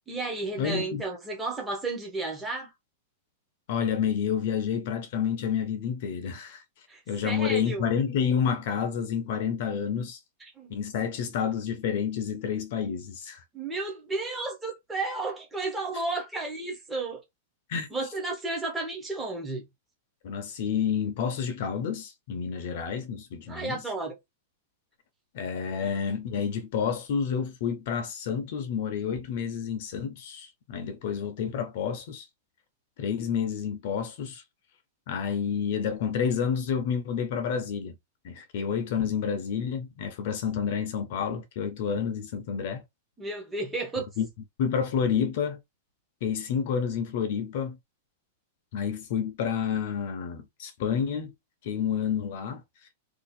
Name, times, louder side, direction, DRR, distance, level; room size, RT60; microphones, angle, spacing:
voice 1, 0.1-2.7 6.9-7.9 10.5-10.7 13.5-17.2 17.9-19.6 23.5-24.1 25.8-25.9 43.2-44.1, right 3 dB, 5° right, 0.8 m, -33 dB
voice 2, 0.6-1.0 3.7-10.2 10.7-13.4 17.7-17.9 20.2-23.8 25.3-32.3 33.0-34.4 35.1-37.9 38.2-42.8 44.2-44.3 44.6-45.6 46.2-47.8 48.7-51.3 51.6-52.6, left 7 dB, 45° left, 0.6 m, -29 dB
2.7 x 2.4 x 4.1 m
supercardioid pair, 175°, 0 cm